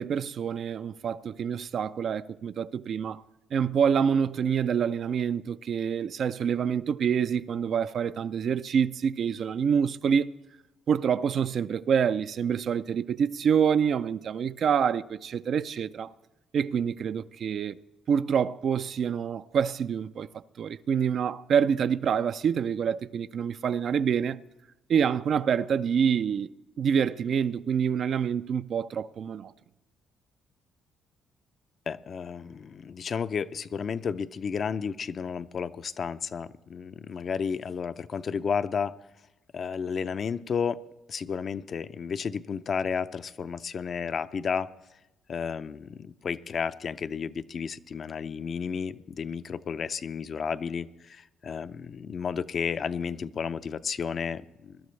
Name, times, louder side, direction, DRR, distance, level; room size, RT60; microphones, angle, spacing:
voice 1, 0.0-3.2 3.5-10.3 10.9-16.1 16.5-17.8 18.1-20.3 20.6-24.4 24.9-26.5 26.8-29.5, right 7 dB, 55° right, 0.4 m, -26 dB
voice 2, 31.9-38.9 39.5-40.8 41.1-44.7 45.3-54.8, left 6 dB, 50° left, 0.5 m, -32 dB
20.5 x 12.0 x 3.2 m
cardioid pair, 85°, 0 cm